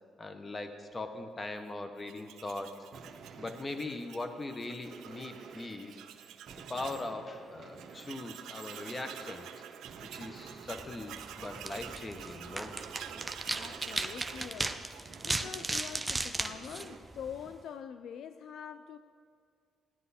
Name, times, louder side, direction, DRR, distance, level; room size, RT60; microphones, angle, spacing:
voice 1, 0.2-2.8 3.4-6.0 6.5-9.5 10.1-12.7, left 2 dB, 30° left, 7 dB, 1.1 m, -40 dB
Tools, 2.0-7.1 7.4-7.5 7.8-15.4, right 10 dB, 85° right, 0.6 m, -48 dB
sound 1, 2.7-17.0, right 5 dB, 60° right, 0.9 m, -52 dB
sound 2, 10.7-17.6, right 2 dB, 15° right, 0.6 m, -37 dB
voice 2, 13.5-14.9 15.2-19.0, left 8 dB, 70° left, 11 dB, 0.3 m, -44 dB
15.5 x 11.0 x 4.2 m, 2.2 s
cardioid pair, 90°, 0 cm